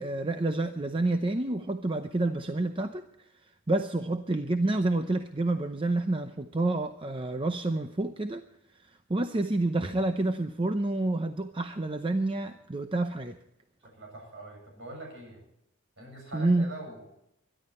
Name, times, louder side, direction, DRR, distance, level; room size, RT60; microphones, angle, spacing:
voice 1, 0.0-3.1 3.7-8.4 8.8-13.4 16.3-16.7, right 2 dB, 25° right, 7 dB, 0.7 m, -28 dB
voice 2, 13.8-15.4 16.0-17.1, right 1 dB, 55° right, 1 dB, 7.5 m, -44 dB
23.0 x 11.5 x 4.3 m, 0.80 s
head